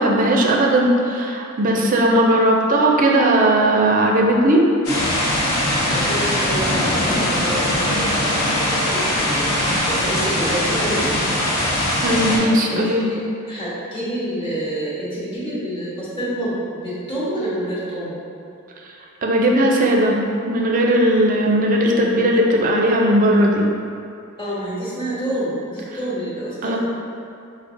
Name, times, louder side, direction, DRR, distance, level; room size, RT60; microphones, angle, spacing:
voice 1, 0.0-4.6 12.0-13.1 19.2-20.2 20.5-23.7 26.6-26.8, right 1 dB, 40° right, 0 dB, 0.4 m, -17 dB
sound 1, 4.8-12.4, left 1 dB, 85° left, 0.8 m, -21 dB
voice 2, 5.8-11.1 12.1-12.8 13.1-13.2 13.5-18.2 24.4-26.8, right 1 dB, 25° left, -9 dB, 1.0 m, -28 dB
5.1 x 2.1 x 2.5 m, 2.7 s
head